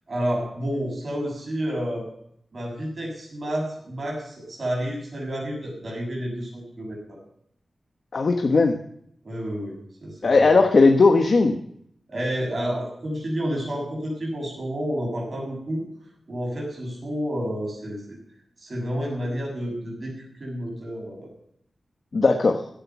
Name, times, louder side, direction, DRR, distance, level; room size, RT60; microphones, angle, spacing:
voice 1, 0.1-2.1 2.5-7.2 9.2-10.6 12.1-15.8 16.3-18.2 18.6-20.1 20.4-21.3, equal, 35° right, -2 dB, 7.2 m, -30 dB
voice 2, 8.1-8.8 10.2-11.6 22.1-22.6, left 3 dB, 50° left, 5 dB, 1.1 m, -17 dB
16.5 x 10.5 x 5.9 m, 0.70 s
wide cardioid pair, 165°, 0 cm